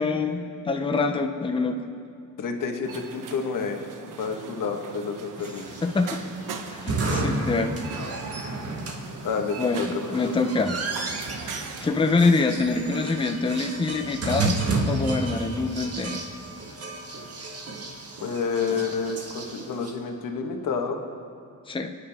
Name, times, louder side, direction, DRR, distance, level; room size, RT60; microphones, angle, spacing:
voice 1, 0.0-1.8 5.8-6.2 6.7-7.7 8.0-8.1 9.6-10.8 11.8-16.2 21.7-21.9, left 3 dB, 15° left, 5 dB, 0.7 m, -25 dB
voice 2, 2.4-5.6 9.2-10.3 18.2-21.0, left 5 dB, 90° left, 3 dB, 1.5 m, -29 dB
sound 1, 2.8-12.1, right 5 dB, 85° right, 1.1 m, -40 dB
sound 2, 5.6-19.9, right 2 dB, 50° right, 1.6 m, -32 dB
29.0 x 9.8 x 3.6 m, 2.4 s
wide cardioid pair, 140°, 31 cm